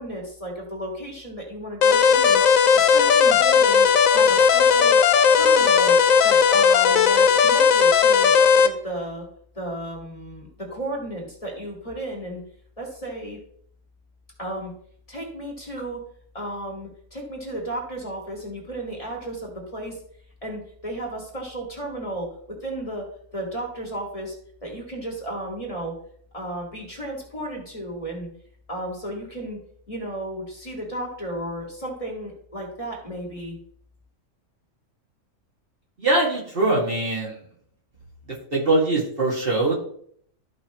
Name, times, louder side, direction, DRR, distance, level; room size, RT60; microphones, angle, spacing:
voice 1, 0.0-2.4 2.7-3.9 4.1-5.0 5.3-6.0 6.2-8.3 8.6-9.2 9.6-12.4 12.8-13.4 14.4-14.7 15.1-16.0 16.3-20.0 20.4-22.3 22.6-23.1 23.3-24.3 24.6-26.0 26.3-28.3 28.7-29.6 29.9-33.6, right 1 dB, 25° left, -1 dB, 2.1 m, -33 dB
sound 1, 1.8-8.7, left 6 dB, 80° left, 1.1 m, -16 dB
voice 2, 36.0-37.4 38.5-39.8, right 2 dB, 45° right, -3 dB, 2.2 m, -22 dB
13.5 x 5.5 x 3.0 m, 0.62 s
omnidirectional pair, 1.4 m